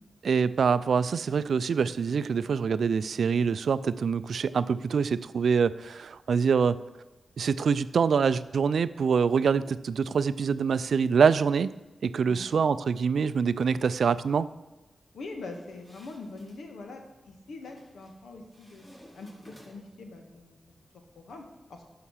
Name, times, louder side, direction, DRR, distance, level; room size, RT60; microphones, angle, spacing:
voice 1, 0.2-6.8 7.4-11.7 12.0-14.5, right 6 dB, 75° right, 15 dB, 0.4 m, -25 dB
voice 2, 12.3-12.6 15.1-18.8 19.1-20.6 21.1-21.4 21.7-21.8, left 3 dB, 85° left, 3 dB, 1.5 m, -43 dB
sound 1, 15.4-16.6 17.6-18.2 18.5-20.0, equal, 30° left, 4.3 m, -55 dB
11.0 x 5.8 x 6.4 m, 1.1 s
cardioid pair, 50°, 0 cm